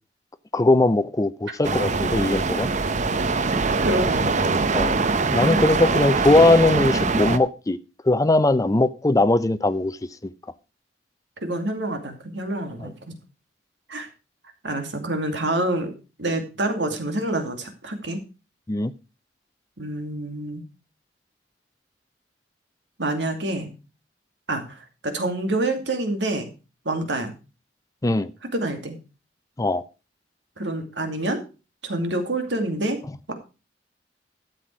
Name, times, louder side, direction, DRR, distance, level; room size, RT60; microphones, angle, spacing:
voice 1, 0.5-2.7 4.7-5.0 5.3-7.8 8.0-10.0 18.7-18.9 28.0-28.3 29.6-29.8, left 2 dB, 20° left, 0.5 m, -20 dB
sound 1, 1.6-7.4, right 3 dB, 45° right, 0.8 m, -23 dB
voice 2, 3.8-4.3 5.4-5.6 11.4-13.2 13.9-14.1 14.6-15.9 16.2-18.2 19.8-20.6 23.0-23.7 24.5-26.5 26.8-27.3 28.5-29.0 30.6-31.4 31.8-33.0 33.3-33.4, right 1 dB, 80° right, 2.5 m, -27 dB
12.5 x 7.8 x 4.7 m
head